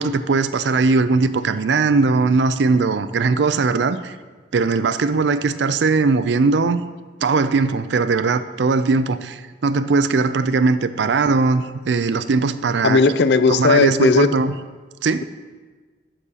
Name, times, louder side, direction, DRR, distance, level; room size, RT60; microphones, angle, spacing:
voice 1, 0.0-4.2 4.5-6.8 7.2-13.0 13.5-14.5 15.0-15.2, right 4 dB, 70° right, 13 dB, 0.4 m, -19 dB
voice 2, 12.8-14.3, left 4 dB, 65° left, 12 dB, 0.4 m, -16 dB
12.0 x 8.4 x 2.9 m, 1.4 s
head